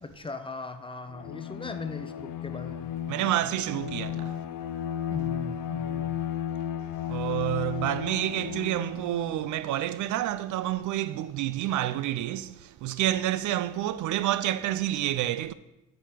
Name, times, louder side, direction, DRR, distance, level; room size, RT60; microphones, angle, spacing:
voice 1, 0.0-2.9 5.1-6.2, left 3 dB, 15° left, 0.7 m, -39 dB
Bowed string instrument, 1.1-9.6, left 9 dB, 85° left, 0.6 m, -34 dB
voice 2, 3.1-4.4 7.0-15.5, right 13 dB, 75° right, 0.5 m, -29 dB
7.4 x 5.2 x 6.0 m
cardioid pair, 90°, 30 cm